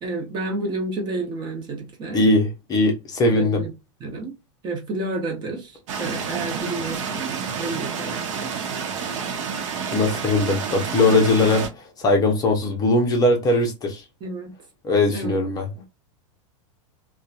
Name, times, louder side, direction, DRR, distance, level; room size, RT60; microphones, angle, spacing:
voice 1, 0.0-2.2 3.2-3.7 4.0-4.3 4.6-7.3 7.6-8.5 9.4-9.5 14.2-14.5 15.1-15.4, right 2 dB, 25° right, 0.8 m, -30 dB
voice 2, 2.1-3.6 9.9-11.6 12.0-14.0 14.8-15.7, left 2 dB, 25° left, 0.6 m, -20 dB
sound 1, 5.9-11.7, right 6 dB, 75° right, 0.8 m, -29 dB
2.7 x 2.2 x 2.4 m
supercardioid pair, 140°, 16 cm